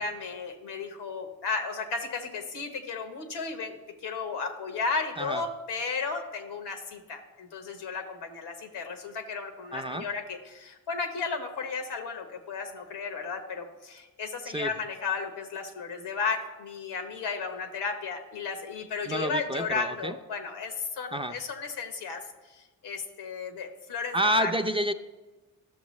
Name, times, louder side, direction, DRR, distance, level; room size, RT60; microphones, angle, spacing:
voice 1, 0.0-24.5, left 4 dB, 90° left, 5 dB, 1.1 m, -34 dB
voice 2, 9.7-10.1 14.5-14.7 19.1-20.1 21.1-21.4 24.1-24.9, right 1 dB, 15° right, 7 dB, 0.5 m, -28 dB
12.0 x 6.5 x 3.1 m, 1.2 s
supercardioid pair, 55°, 39 cm